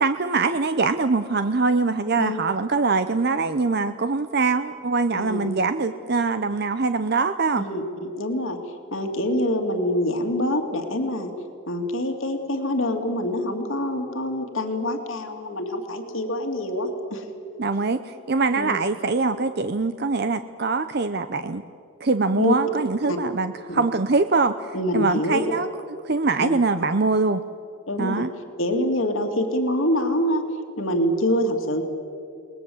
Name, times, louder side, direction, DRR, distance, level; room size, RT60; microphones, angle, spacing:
voice 1, 0.0-7.7 17.6-21.6 22.0-25.7 26.0-27.4 28.0-28.3, right 3 dB, 50° right, 10 dB, 0.7 m, -23 dB
voice 2, 5.1-5.5 7.6-8.6 8.9-11.3 11.7-17.3 18.6-18.8 22.4-22.8 23.1-23.2 24.7-25.4 26.4-26.6 27.9-28.3 28.6-30.4 30.8-31.8, left 1 dB, 70° left, 5 dB, 2.5 m, -25 dB
29.5 x 20.5 x 7.9 m, 2.5 s
head